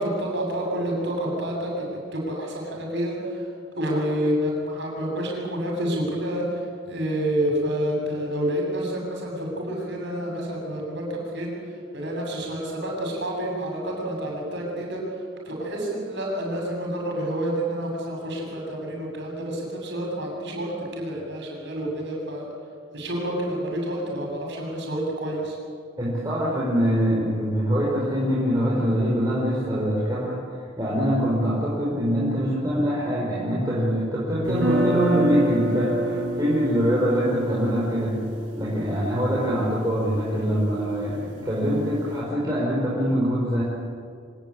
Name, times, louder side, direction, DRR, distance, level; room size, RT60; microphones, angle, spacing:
voice 1, 0.0-3.4 3.8-11.5 11.9-15.0 15.5-22.5 22.9-25.6, right 1 dB, 60° right, 0 dB, 7.7 m, -28 dB
voice 2, 26.0-30.4 30.8-38.2 38.6-43.6, equal, 20° right, -6 dB, 5.0 m, -24 dB
sound 1, 34.5-40.5, equal, 80° right, 5.2 m, -27 dB
25.5 x 18.5 x 8.9 m, 2.2 s
head